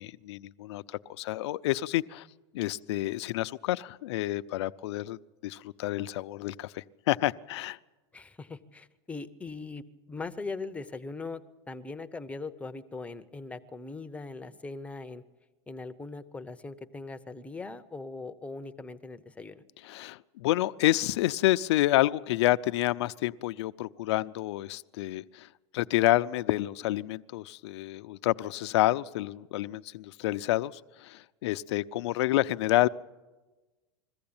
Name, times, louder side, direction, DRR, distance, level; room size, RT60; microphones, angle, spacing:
voice 1, 0.0-2.3 2.5-5.2 5.4-7.8 19.8-25.5 25.7-32.9, left 16 dB, 80° left, 13 dB, 0.6 m, -29 dB
voice 2, 8.1-11.4 11.7-15.2 15.7-19.6, left 3 dB, 10° left, 9 dB, 0.8 m, -40 dB
21.5 x 15.0 x 8.8 m, 1.2 s
supercardioid pair, 130°, 14 cm